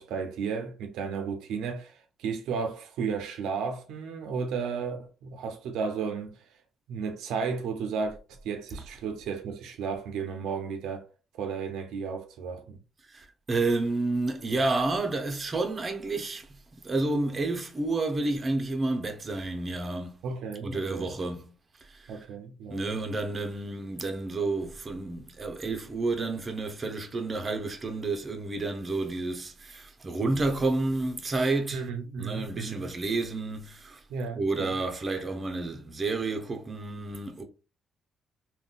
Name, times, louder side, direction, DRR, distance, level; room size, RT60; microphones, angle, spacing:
voice 1, 0.0-6.4 6.9-11.1 11.3-12.8 20.2-21.1 22.1-23.0 31.7-32.9 34.1-34.8, right 5 dB, 90° right, 0.5 m, -34 dB
voice 2, 13.1-16.5 16.8-20.2 20.6-21.5 21.9-22.1 22.7-31.9 32.2-34.0 34.4-37.4, right 2 dB, 30° right, 0.6 m, -30 dB
3.6 x 2.3 x 2.3 m
cardioid pair, 90°, 0 cm